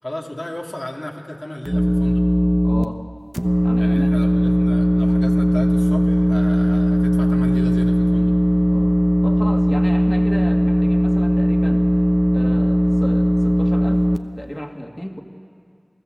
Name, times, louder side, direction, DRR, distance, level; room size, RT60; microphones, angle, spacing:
voice 1, 0.0-2.2 3.8-8.3, left 1 dB, 55° left, 0 dB, 2.4 m, -34 dB
sound 1, 1.7-2.8 3.3-14.2, equal, 20° right, 0.9 m, -17 dB
voice 2, 2.6-3.0 3.6-4.4 8.7-11.9 12.3-14.1 14.4-15.2, equal, 15° left, 3 dB, 2.2 m, -34 dB
28.5 x 17.5 x 7.9 m, 2.3 s
wide cardioid pair, 45°, 0 cm